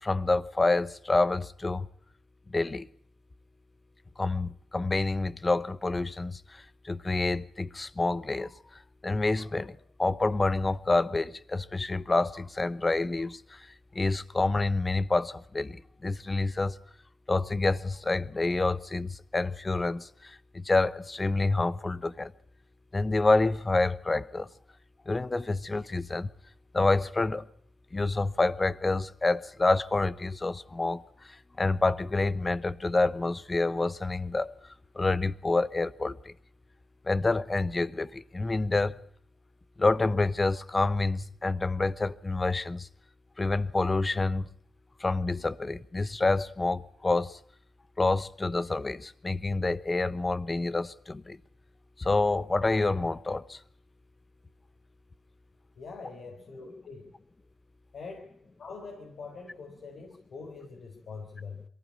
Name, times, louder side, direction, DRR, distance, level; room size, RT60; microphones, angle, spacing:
voice 1, 0.0-1.9 2.5-2.9 4.2-8.5 9.0-13.7 13.9-16.8 17.3-22.3 22.9-24.5 25.1-26.3 26.7-27.5 27.9-34.6 34.9-36.3 37.1-39.0 39.8-42.9 43.4-44.5 45.0-47.4 48.0-51.4 52.0-53.6, left 3 dB, 30° left, 0.9 m, -28 dB
voice 2, 55.8-57.0 57.9-58.2 58.6-61.7, left 4 dB, 70° left, 4.2 m, -43 dB
22.5 x 15.0 x 8.6 m
supercardioid pair, 55°, 0 cm